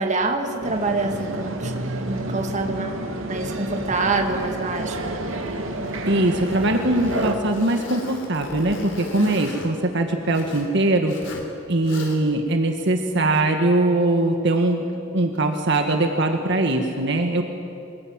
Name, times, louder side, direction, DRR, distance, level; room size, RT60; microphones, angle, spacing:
voice 1, 0.0-3.0 3.3-5.1 9.2-9.3, right 3 dB, 35° right, 3 dB, 2.4 m, -26 dB
sound 1, 0.6-7.4, right 1 dB, 75° right, 2.5 m, -30 dB
Zipper (clothing), 4.2-10.7 11.0-11.5 11.8-12.4, left 1 dB, 65° left, 3.7 m, -39 dB
voice 2, 6.1-11.2 11.7-14.9 15.1-17.4, right 2 dB, 60° right, 4 dB, 1.8 m, -21 dB
25.5 x 20.5 x 8.9 m, 2.6 s
head